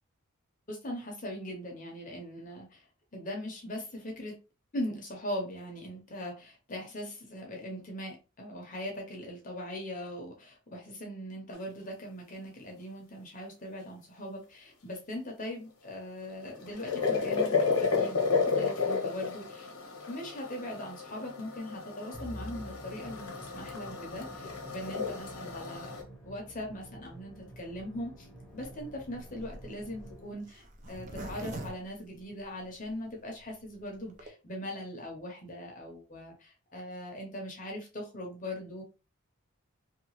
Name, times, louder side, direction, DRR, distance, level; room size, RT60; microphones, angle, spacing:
voice 1, 0.7-2.9 3.1-4.4 4.7-19.7 20.1-25.9 26.2-28.3 28.5-38.8, left 1 dB, 35° left, 1 dB, 0.7 m, -40 dB
sound 1, 16.2-26.0, left 5 dB, 80° left, 0.8 m, -32 dB
Musical instrument, 22.1-30.6, right 1 dB, ahead, 0.7 m, -49 dB
Zipper (clothing), 28.6-32.9 33.4-33.5 33.6-33.7 34.0-34.3, right 2 dB, 35° right, 0.4 m, -44 dB
2.8 x 2.3 x 2.9 m, 0.31 s
head